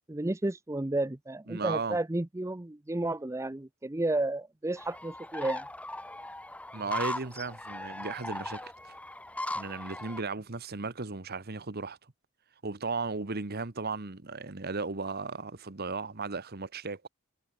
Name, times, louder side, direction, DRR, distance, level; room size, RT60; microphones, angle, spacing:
voice 1, 0.1-5.6, right 2 dB, 15° right, 0.6 m, -32 dB
voice 2, 1.5-2.0 6.7-8.7 9.5-12.0 12.6-17.1, right 4 dB, 45° right, 1.2 m, -35 dB
sound 1, 4.8-10.2, left 1 dB, 5° left, 1.5 m, -38 dB
head